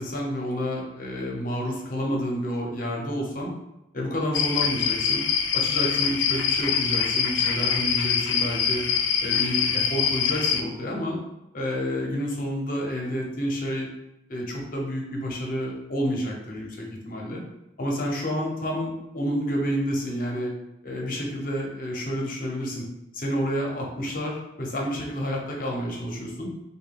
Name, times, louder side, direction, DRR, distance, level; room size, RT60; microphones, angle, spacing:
voice 1, 0.0-3.5 3.9-5.2 5.5-8.8 9.2-11.2 11.5-13.9 14.3-17.4 17.8-20.5 20.8-22.9 23.1-26.5, equal, 50° left, -1 dB, 0.7 m, -29 dB
sound 1, 4.3-10.6, left 7 dB, 85° left, 0.4 m, -24 dB
3.2 x 2.3 x 3.5 m, 0.91 s
head